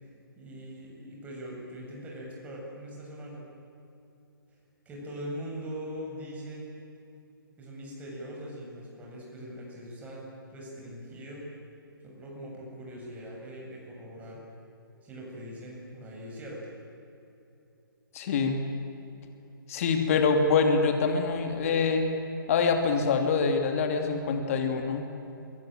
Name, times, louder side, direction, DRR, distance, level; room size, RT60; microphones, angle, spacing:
voice 1, 0.4-3.4 4.8-6.7 7.6-10.2 10.5-11.5 12.0-14.4 15.0-16.7, equal, 10° right, -3 dB, 7.7 m, -41 dB
voice 2, 18.1-18.6 19.7-22.0 22.5-25.0, left 5 dB, 40° left, 5 dB, 2.8 m, -25 dB
26.5 x 24.0 x 9.1 m, 2.9 s
figure-of-eight pair, 135°, 12 cm